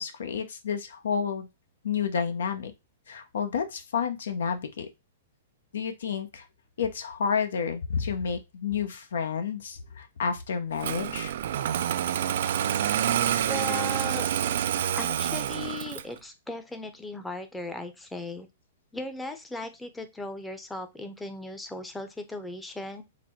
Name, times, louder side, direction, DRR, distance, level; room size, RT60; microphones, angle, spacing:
voice 1, 0.0-1.5 1.8-2.7 3.1-4.9 5.7-6.4 6.8-11.4, left 6 dB, 80° left, 7 dB, 0.7 m, -30 dB
Engine starting, 10.8-16.2, right 10 dB, 65° right, 0.3 m, -27 dB
voice 2, 13.5-14.3 15.0-18.5 18.9-23.0, left 2 dB, 5° left, 7 dB, 0.6 m, -37 dB
4.0 x 2.1 x 4.2 m, 0.23 s
hypercardioid pair, 135°, 0 cm